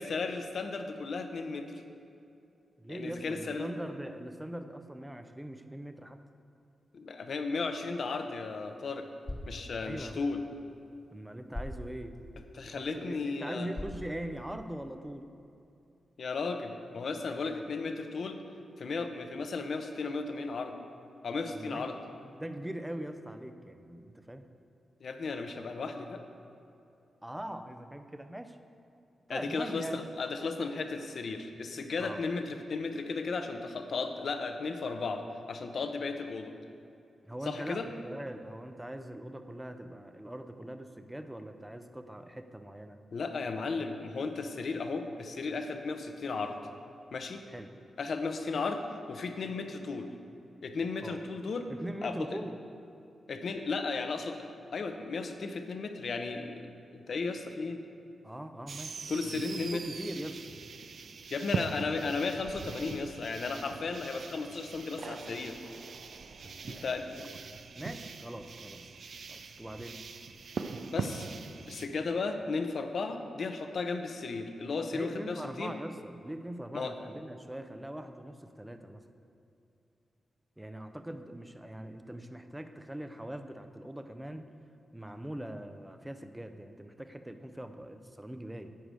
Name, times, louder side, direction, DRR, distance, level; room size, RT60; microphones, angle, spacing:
voice 1, 0.0-1.8 2.9-3.7 6.9-9.1 9.5-10.4 12.5-13.7 16.2-18.4 18.8-20.7 21.2-22.0 25.0-26.2 29.3-36.5 37.5-37.9 43.1-46.6 47.1-47.4 48.0-48.8 49.1-50.1 50.6-51.7 52.0-52.4 53.3-54.4 54.7-57.8 59.1-59.8 61.3-65.6 66.7-67.3 70.8-71.3 71.7-75.7 76.7-76.9, left 4 dB, 60° left, 6 dB, 0.8 m, -35 dB
voice 2, 2.8-6.2 9.8-10.2 11.1-12.2 12.6-15.3 17.4-17.7 21.5-24.4 27.2-28.6 29.3-30.0 32.0-32.2 37.2-43.0 47.5-47.7 51.0-51.2 51.7-52.6 58.2-60.5 66.4-67.2 67.8-68.9 69.3-70.0 74.9-79.0 80.6-84.5 84.9-88.7, right 1 dB, 10° right, 8 dB, 0.6 m, -42 dB
sound 1, 8.0-14.9, left 1 dB, 25° left, 1.3 m, -46 dB
sound 2, 58.7-71.9, right 5 dB, 65° right, 0.5 m, -41 dB
10.5 x 4.9 x 7.6 m, 2.7 s
cardioid pair, 95°, 0 cm